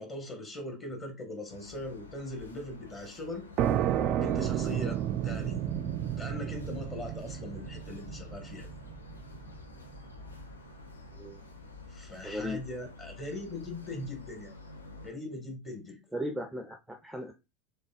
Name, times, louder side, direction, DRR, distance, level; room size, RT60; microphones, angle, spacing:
voice 1, 0.0-3.5 4.2-5.6 6.2-8.7 11.9-14.6 15.0-16.0, left 2 dB, 25° left, 1.6 m, -40 dB
sound 1, 1.5-15.1, left 3 dB, 80° left, 0.6 m, -50 dB
sound 2, 3.6-11.0, right 10 dB, 45° right, 0.3 m, -32 dB
voice 2, 12.2-12.6 16.1-17.3, equal, ahead, 0.6 m, -36 dB
3.9 x 3.3 x 2.4 m
figure-of-eight pair, 75°, 0 cm